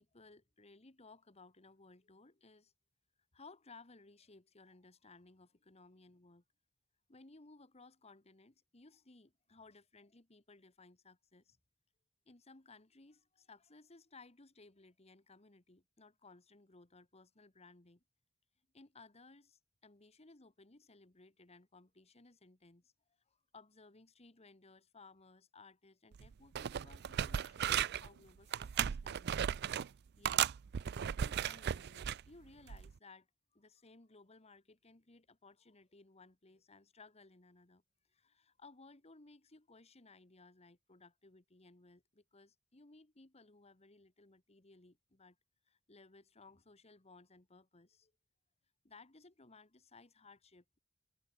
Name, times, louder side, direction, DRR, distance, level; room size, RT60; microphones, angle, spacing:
voice 1, 0.0-2.7 3.3-6.4 7.1-11.6 12.2-18.0 18.7-22.9 23.3-29.9 30.2-30.4 30.8-33.3 33.5-37.8 38.1-45.4 45.7-48.1 48.8-50.8, left 3 dB, 30° left, 1.6 m, -61 dB
sound 1, 26.1-26.3 26.5-28.1 28.5-29.9 30.2-32.2 32.7-32.9, right 9 dB, 55° right, 0.4 m, -35 dB
head